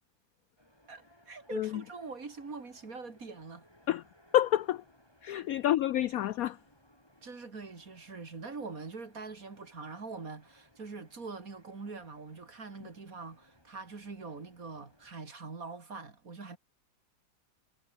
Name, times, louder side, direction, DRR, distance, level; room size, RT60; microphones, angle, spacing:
sound 1, 0.6-15.2, equal, 10° left, 7.6 m, -64 dB
voice 1, 0.9-3.6 5.3-5.5 7.2-16.6, right 4 dB, 45° right, 3.1 m, -44 dB
voice 2, 1.5-1.8 3.9-4.0 4.3-4.8 5.2-6.6, left 12 dB, 75° left, 0.8 m, -28 dB
omnidirectional pair, 2.0 m